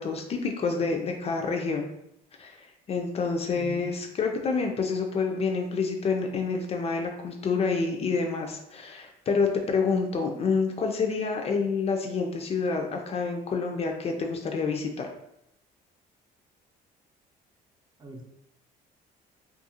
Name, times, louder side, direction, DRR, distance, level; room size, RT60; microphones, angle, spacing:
voice 1, 0.0-1.9 2.4-15.1, left 4 dB, 40° left, 3 dB, 0.3 m, -28 dB
voice 2, 3.5-3.9 18.0-18.2, right 3 dB, 25° right, 1 dB, 0.5 m, -40 dB
2.4 x 2.4 x 2.8 m, 0.78 s
cardioid pair, 110°, 17 cm